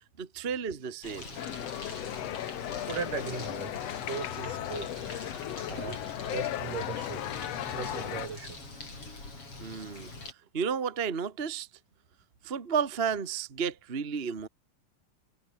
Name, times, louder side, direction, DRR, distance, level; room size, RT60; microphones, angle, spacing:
voice 1, 0.2-1.3 9.6-10.1 10.5-11.7 12.4-14.5, right 6 dB, 25° right, 1.4 m, -32 dB
Bird, 1.0-10.3, left 2 dB, 45° left, 8.8 m, -43 dB
sound 1, 1.4-8.3, left 13 dB, 65° left, 1.9 m, -36 dB
voice 2, 2.9-5.0 5.7-6.0 6.3-7.2 7.7-8.6 14.2-14.3, right 6 dB, 80° right, 5.7 m, -38 dB
omnidirectional pair, 3.7 m